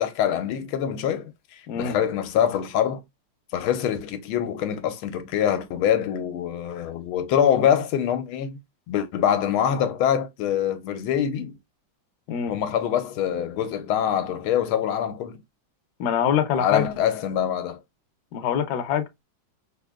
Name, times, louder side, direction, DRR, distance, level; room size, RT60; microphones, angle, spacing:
voice 1, 0.0-3.0 3.5-8.6 8.9-11.6 12.5-15.4 16.6-17.8, left 9 dB, 90° left, 1.5 m, -24 dB
voice 2, 16.0-16.9 18.3-19.2, left 8 dB, 70° left, 1.0 m, -24 dB
3.8 x 2.7 x 2.2 m
omnidirectional pair, 2.3 m